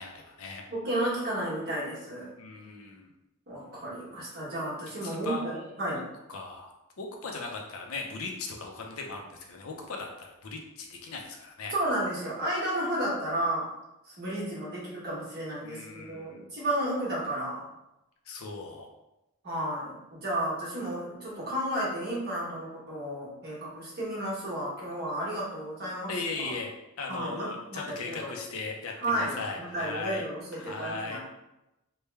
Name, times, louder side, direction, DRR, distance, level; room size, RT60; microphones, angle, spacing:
voice 1, 0.0-0.6 2.4-3.1 5.0-6.0 6.3-11.7 15.6-16.5 18.2-18.9 26.1-26.7 27.0-30.2 30.5-31.2, left 3 dB, 85° left, 2 dB, 0.6 m, -38 dB
voice 2, 0.7-2.3 3.5-6.0 11.7-13.7 14.1-17.6 19.4-26.2 27.1-28.3 29.0-31.2, right 1 dB, 50° right, -6 dB, 1.3 m, -32 dB
3.2 x 2.2 x 3.3 m, 0.92 s
head